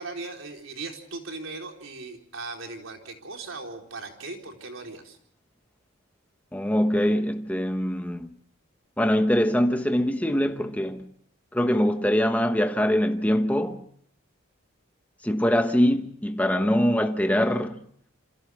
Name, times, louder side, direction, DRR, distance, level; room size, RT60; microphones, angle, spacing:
voice 1, 0.0-5.2, right 3 dB, 75° right, 4.2 m, -38 dB
voice 2, 6.5-8.3 9.0-11.1 11.5-13.8 15.2-17.8, equal, 5° left, 1.1 m, -23 dB
28.0 x 27.0 x 3.5 m
head